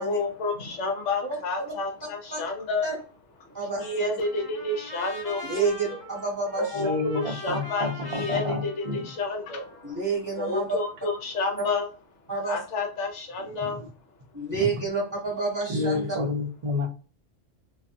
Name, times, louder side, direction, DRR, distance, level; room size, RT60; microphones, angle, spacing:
voice 1, 0.0-2.9 3.4-6.0 6.6-10.0 10.3-11.9 12.5-13.8, left 3 dB, 70° left, 3 dB, 1.0 m, -30 dB
voice 2, 3.5-4.1 5.4-6.8 9.8-10.6 12.3-12.6 14.3-16.2, right 4 dB, 15° right, -5 dB, 1.3 m, -29 dB
Trumpet, 3.7-10.0, left 1 dB, 40° left, 0.7 m, -42 dB
voice 3, 6.7-9.0 13.6-13.7 14.5-14.7 15.7-16.9, left 2 dB, 50° right, 2 dB, 0.4 m, -29 dB
2.4 x 2.4 x 2.5 m, 0.36 s
omnidirectional pair, 1.3 m